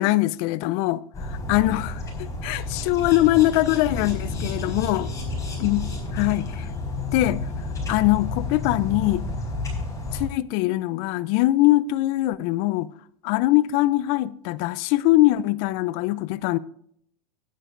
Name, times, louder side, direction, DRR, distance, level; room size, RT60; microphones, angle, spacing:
voice 1, 0.0-1.9 2.2-5.1 5.6-6.7 7.1-7.4 7.9-9.2 10.1-12.9 13.2-16.6, left 17 dB, 50° left, 0.6 m, -22 dB
sound 1, 1.1-10.3, left 2 dB, 15° left, 4.4 m, -31 dB
16.0 x 9.7 x 2.6 m
hypercardioid pair, 110°, 19 cm